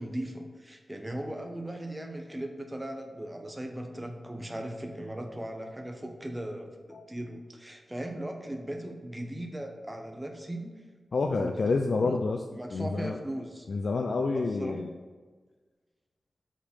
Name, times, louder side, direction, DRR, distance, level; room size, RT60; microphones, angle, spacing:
voice 1, 0.0-10.8 11.3-11.5 11.9-12.2 12.6-13.7 14.3-14.8, right 1 dB, 10° right, 3 dB, 0.8 m, -38 dB
voice 2, 11.1-12.4 12.7-13.2 13.7-14.9, left 3 dB, 70° left, 3 dB, 0.4 m, -28 dB
6.0 x 4.1 x 5.6 m, 1.4 s
wide cardioid pair, 90°, 0 cm